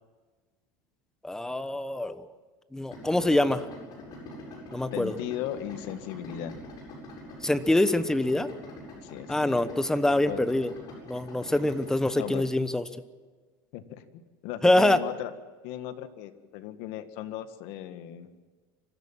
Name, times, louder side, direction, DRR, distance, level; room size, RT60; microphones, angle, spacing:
voice 1, 1.2-2.3 2.7-3.7 4.7-5.1 7.4-8.5 9.3-10.7 11.1-12.8 14.6-15.0, left 1 dB, 5° left, 12 dB, 1.0 m, -25 dB
Idling, 2.9-12.4, left 1 dB, 40° left, 8.0 m, -44 dB
voice 2, 4.9-6.6 9.0-9.7 10.2-10.4 12.1-12.4 13.7-13.8 14.1-15.3 15.6-18.3, left 12 dB, 65° left, 9 dB, 1.8 m, -37 dB
25.5 x 15.5 x 7.5 m, 1.4 s
supercardioid pair, 140°, 10 cm